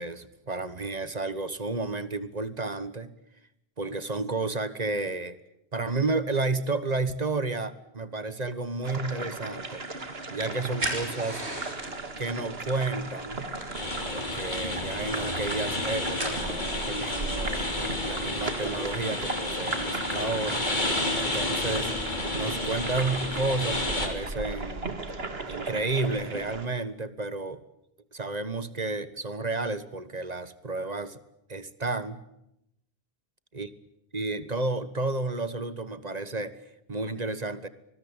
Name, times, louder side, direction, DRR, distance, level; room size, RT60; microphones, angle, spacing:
voice 1, 0.0-3.1 3.8-5.4 5.7-9.8 10.3-11.4 12.2-13.5 14.1-17.6 18.0-20.7 21.1-21.9 22.3-25.0 25.5-27.6 28.1-31.2 31.5-32.2 33.5-33.7 34.1-36.5 36.9-37.7, right 3 dB, 40° right, 14 dB, 1.5 m, -31 dB
sound 1, 8.8-26.7, right 3 dB, 70° right, 2.4 m, -36 dB
sound 2, 9.6-22.1, right 2 dB, 85° right, 4.9 m, -42 dB
sound 3, 13.7-24.1, left 2 dB, 45° left, 3.8 m, -31 dB
25.0 x 20.5 x 8.9 m, 0.82 s
omnidirectional pair, 1.1 m